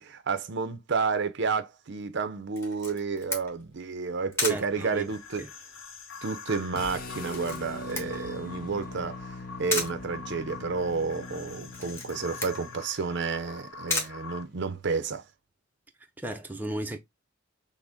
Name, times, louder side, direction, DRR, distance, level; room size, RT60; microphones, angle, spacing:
voice 1, 0.0-5.4 6.2-15.2, right 5 dB, 65° right, 0.6 m, -31 dB
Camera, 2.6-15.0, left 2 dB, 15° left, 1.2 m, -37 dB
sound 1, 4.5-14.4, left 5 dB, 85° left, 0.8 m, -45 dB
voice 2, 4.5-5.1 5.4-5.5 16.2-17.0, right 1 dB, 10° right, 0.6 m, -35 dB
sound 2, 6.7-12.9, left 3 dB, 50° left, 0.6 m, -42 dB
6.2 x 2.1 x 3.4 m
head